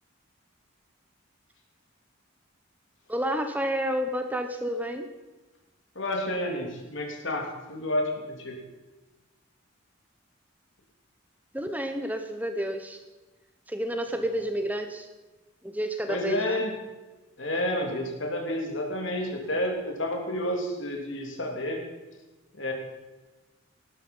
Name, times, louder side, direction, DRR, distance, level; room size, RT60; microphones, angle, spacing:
voice 1, 3.1-5.1 11.5-13.0 13.7-15.1 15.6-16.6, equal, 10° right, 7 dB, 0.9 m, -30 dB
voice 2, 5.9-8.6 16.1-16.7 17.4-21.8 22.5-22.7, left 1 dB, 65° left, 2 dB, 3.2 m, -30 dB
19.0 x 12.0 x 5.5 m, 1.2 s
head